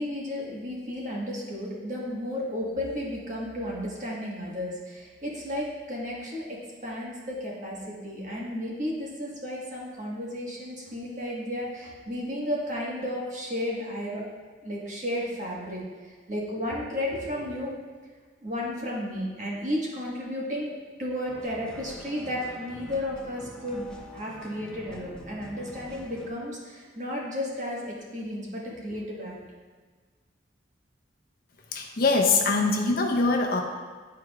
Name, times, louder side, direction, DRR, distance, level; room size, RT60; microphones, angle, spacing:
voice 1, 0.0-14.2 14.6-17.7 18.4-20.7 21.0-23.9 24.1-29.4, left 1 dB, 40° right, -4 dB, 1.4 m, -33 dB
sound 1, 21.3-26.3, left 1 dB, 5° left, 0.5 m, -46 dB
voice 2, 31.7-33.6, left 3 dB, 50° left, 1 dB, 0.7 m, -23 dB
10.5 x 4.6 x 2.4 m, 1.4 s
head